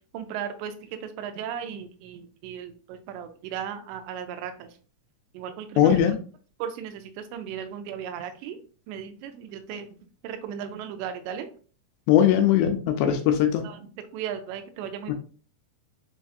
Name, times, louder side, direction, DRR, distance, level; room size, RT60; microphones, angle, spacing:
voice 1, 0.1-4.7 5.3-6.2 6.6-8.6 8.9-9.9 10.2-11.5 13.6-13.9 14.1-15.1, right 8 dB, 90° right, 7 dB, 2.8 m, -36 dB
voice 2, 5.8-6.2 12.1-13.6 15.1-15.2, left 10 dB, 85° left, 6 dB, 2.4 m, -20 dB
6.9 x 2.5 x 2.4 m, 0.39 s
omnidirectional pair, 4.9 m